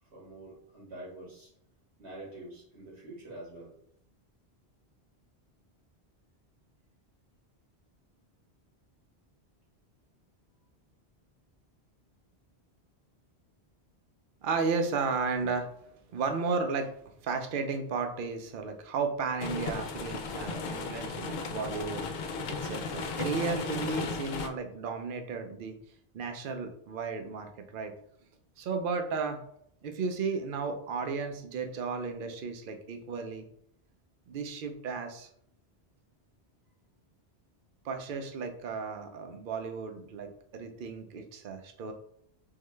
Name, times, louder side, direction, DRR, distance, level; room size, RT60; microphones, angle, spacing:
voice 1, 0.0-1.5 2.0-3.8, right 1 dB, 80° right, -4 dB, 1.9 m, -46 dB
voice 2, 14.4-15.7 16.1-25.8 26.1-27.9 28.6-29.4 29.8-33.5 34.3-35.3 37.8-41.9, right 4 dB, 60° right, 6 dB, 0.7 m, -34 dB
sound 1, 19.4-24.5, left 4 dB, 55° left, 0.5 m, -35 dB
3.8 x 3.2 x 3.2 m, 0.70 s
omnidirectional pair, 1.1 m